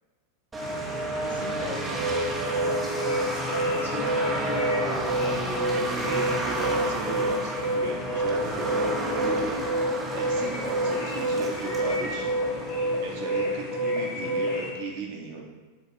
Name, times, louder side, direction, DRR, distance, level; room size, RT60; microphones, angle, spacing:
sound 1, 0.5-13.6, right 2 dB, 15° right, 1.1 m, -32 dB
sound 2, 0.6-14.7, left 1 dB, 40° left, 1.1 m, -38 dB
voice 1, 1.2-2.0 2.8-3.2 3.4-5.1, left 2 dB, 70° left, -1 dB, 1.5 m, -38 dB
sound 3, 1.9-14.5, right 2 dB, 20° left, 1.6 m, -27 dB
voice 2, 5.7-12.3 12.9-15.5, right 5 dB, 45° right, 0 dB, 1.3 m, -36 dB
7.2 x 3.9 x 4.4 m, 1.3 s
figure-of-eight pair, 90°, 0 cm